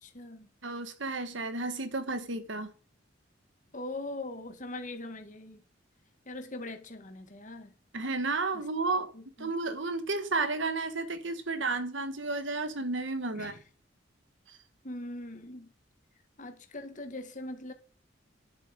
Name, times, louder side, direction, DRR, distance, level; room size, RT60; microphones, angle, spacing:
voice 1, 0.0-0.5 3.7-5.6 6.3-7.7 8.5-8.6 9.1-9.5 13.3-13.6 14.8-15.7 16.4-17.7, left 2 dB, 45° left, 2.1 m, -41 dB
voice 2, 0.6-2.7 7.9-9.1 9.4-13.5 14.5-14.6, right 3 dB, 80° right, 1.6 m, -32 dB
10.5 x 8.3 x 5.3 m
head